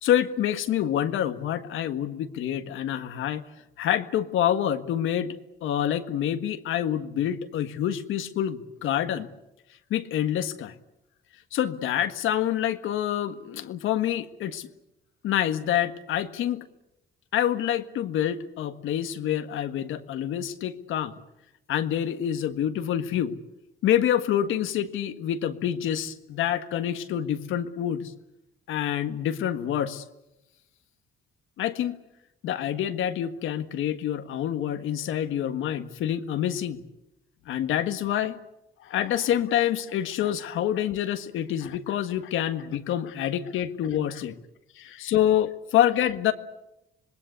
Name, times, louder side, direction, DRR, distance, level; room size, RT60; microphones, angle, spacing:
voice 1, 0.0-3.4 3.8-5.3 5.6-9.3 9.9-10.7 11.5-14.7 15.2-16.6 17.3-21.2 21.7-23.4 23.8-28.1 28.7-30.0 31.6-32.0 32.4-36.8 37.5-38.4 38.8-44.4 44.7-46.3, left 10 dB, 85° left, 9 dB, 1.6 m, -27 dB
26.5 x 20.5 x 8.3 m, 0.90 s
cardioid pair, 90°, 20 cm